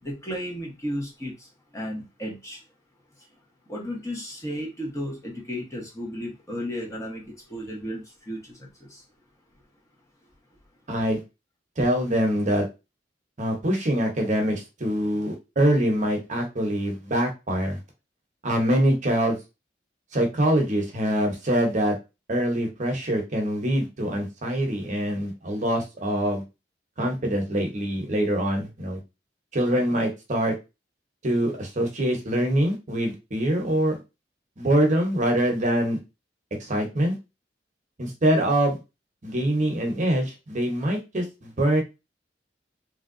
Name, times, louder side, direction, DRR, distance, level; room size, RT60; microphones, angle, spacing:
voice 1, 0.0-2.6 3.2-3.3 3.7-9.0, equal, 20° left, 1.0 m, -34 dB
voice 2, 10.9-11.2 11.8-12.7 13.4-17.8 18.4-19.4 20.1-22.0 22.3-26.4 27.0-29.0 29.5-30.5 31.2-34.0 34.6-36.0 36.6-37.2 38.0-38.8 39.2-41.8, right 1 dB, 45° right, 0.9 m, -24 dB
3.3 x 2.7 x 2.6 m
head